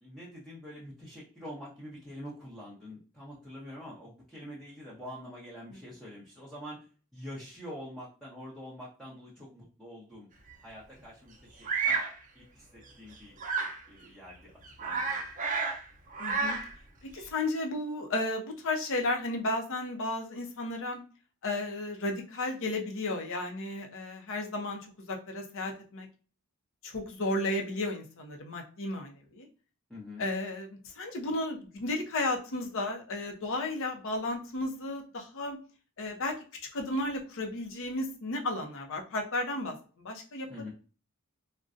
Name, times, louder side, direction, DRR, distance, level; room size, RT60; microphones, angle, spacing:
voice 1, 0.0-6.8 7.1-10.3 10.6-11.6 11.9-12.0 12.3-13.4 13.9-14.5 14.8-15.2 29.9-30.2 40.5-40.7, equal, ahead, -8 dB, 0.7 m, -45 dB
Bird vocalization bird call bird song, 11.6-12.1 13.4-13.8 14.3-14.4 14.6-15.8 16.1-16.7, right 4 dB, 35° right, 0.7 m, -30 dB
voice 2, 16.2-16.6 17.1-21.0 21.4-24.8 25.1-26.1 26.8-29.5 30.2-35.6 36.0-36.3 36.7-40.7, left 2 dB, 65° left, 3 dB, 0.7 m, -33 dB
3.8 x 2.2 x 2.5 m, 0.37 s
head